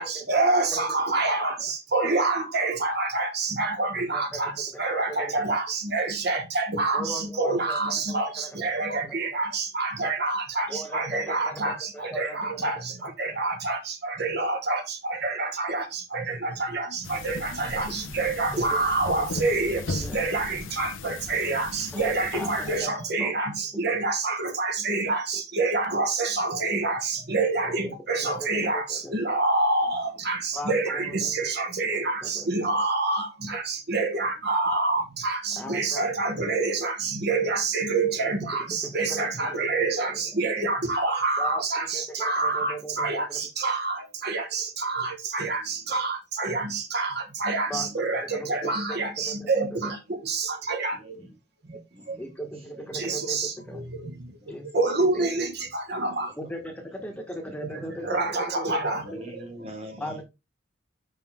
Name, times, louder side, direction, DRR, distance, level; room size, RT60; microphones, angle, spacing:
voice 1, 0.0-51.2 51.7-51.8 52.1-52.2 52.9-56.3 57.6-59.3, right 3 dB, 55° right, 1.4 m, -27 dB
voice 2, 4.1-5.3 6.9-8.6 8.9-9.2 10.7-13.4 18.5-18.9 19.9-20.2 21.9-22.9 23.2-23.4 23.9-24.0 25.3-25.4 27.8-28.0 28.2-29.1 30.5-31.4 31.9-32.5 35.5-36.1 38.2-38.3 38.8-39.7 40.1-40.4 41.4-43.4 47.7-49.5 49.8-49.9 52.2-53.8 54.5-54.7 55.0-55.3 56.4-58.8 59.1-59.2 60.0-60.2, equal, 10° left, 1.1 m, -38 dB
sound 1, 17.0-22.8, left 3 dB, 90° left, 0.8 m, -37 dB
voice 3, 45.5-45.9 47.7-47.9 50.9-51.4 51.9-53.4 54.3-54.8 55.9-56.0 57.4-58.1 59.0-60.2, equal, 30° right, 2.0 m, -46 dB
5.9 x 5.4 x 3.5 m
head